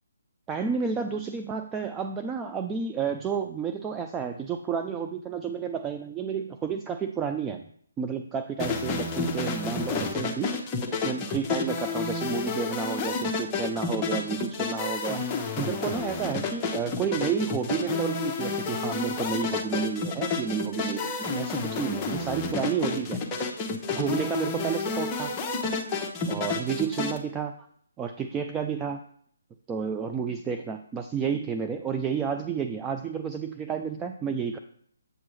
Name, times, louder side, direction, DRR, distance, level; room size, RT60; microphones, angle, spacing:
voice 1, 0.5-7.7 8.0-10.7 11.0-15.2 15.6-23.2 23.9-25.3 26.3-27.5 28.0-29.0 29.7-34.6, right 6 dB, 15° right, 6 dB, 0.3 m, -31 dB
sound 1, 8.6-27.2, left 4 dB, 15° left, 0.8 m, -30 dB
7.9 x 5.9 x 3.2 m, 0.63 s
figure-of-eight pair, 150°, 0 cm